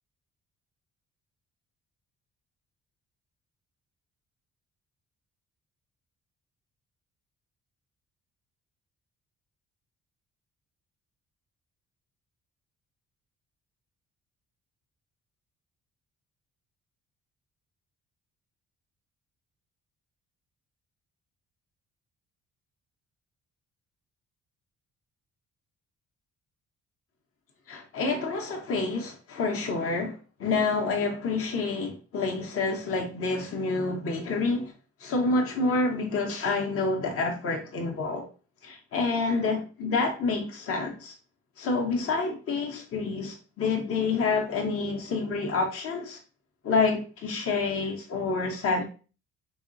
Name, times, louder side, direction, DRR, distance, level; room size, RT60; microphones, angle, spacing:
voice 1, 27.7-34.7 35.0-38.2 38.6-41.1 41.6-46.2 46.6-48.8, left 3 dB, 50° left, 0.6 m, -28 dB
3.7 x 2.1 x 2.4 m
cardioid pair, 90°, 30 cm